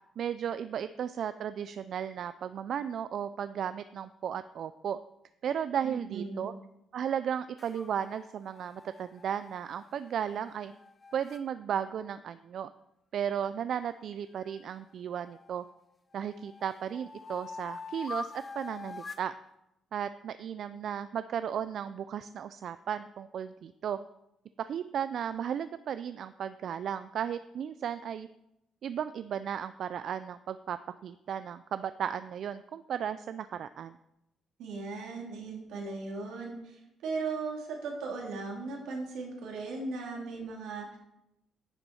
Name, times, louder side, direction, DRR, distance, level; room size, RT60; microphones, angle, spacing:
voice 1, 0.2-5.0 5.4-6.5 6.9-10.7 11.1-12.7 13.1-15.6 16.1-19.3 19.9-24.0 24.6-28.3 28.8-30.8 31.0-34.0, right 8 dB, 65° right, 12 dB, 0.3 m, -35 dB
voice 2, 5.8-6.5 34.6-41.0, right 4 dB, 85° right, 0 dB, 2.5 m, -37 dB
sound 1, 7.6-11.4 14.4-15.6 16.1-19.3, left 3 dB, 30° left, 0.5 m, -45 dB
10.0 x 6.8 x 4.4 m, 0.85 s
cardioid pair, 90°, 0 cm